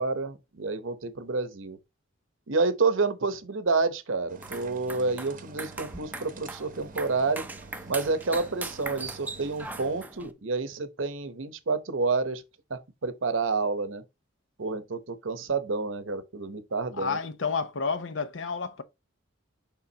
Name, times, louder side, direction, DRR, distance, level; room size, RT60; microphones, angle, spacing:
voice 1, 0.0-1.8 2.5-7.5 7.9-12.4 12.7-14.0 14.6-17.2, right 3 dB, 75° right, 0.9 m, -29 dB
sound 1, 4.3-10.3, right 3 dB, 10° right, 0.5 m, -40 dB
sound 2, 4.3-10.0, right 4 dB, 40° right, 0.8 m, -48 dB
voice 2, 16.9-18.8, left 5 dB, 65° left, 0.7 m, -30 dB
7.0 x 5.1 x 2.8 m
head